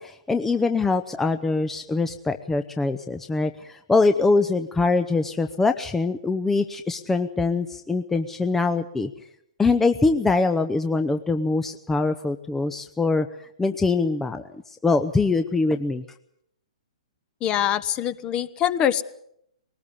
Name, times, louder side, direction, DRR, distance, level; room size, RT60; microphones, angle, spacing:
voice 1, 0.0-9.1 9.6-13.3 13.6-16.0, left 3 dB, 10° left, 8 dB, 0.8 m, -23 dB
voice 2, 17.4-19.0, left 10 dB, 25° left, 15 dB, 1.2 m, -24 dB
21.5 x 19.0 x 8.5 m, 0.74 s
hypercardioid pair, 130°, 4 cm